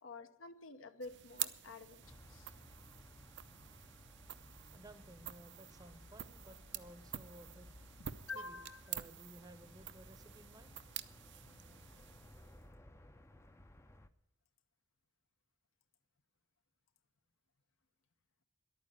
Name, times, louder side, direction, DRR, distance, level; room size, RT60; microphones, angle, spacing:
voice 1, 0.0-2.5 8.0-8.9, left 3 dB, 70° left, 0.9 m, -49 dB
sound 1, 1.0-12.7, right 12 dB, 60° right, 0.6 m, -48 dB
sound 2, 2.0-14.1, left 1 dB, 15° left, 0.6 m, -59 dB
voice 2, 3.5-11.0, right 1 dB, 20° right, 0.8 m, -58 dB
11.5 x 9.1 x 9.4 m
head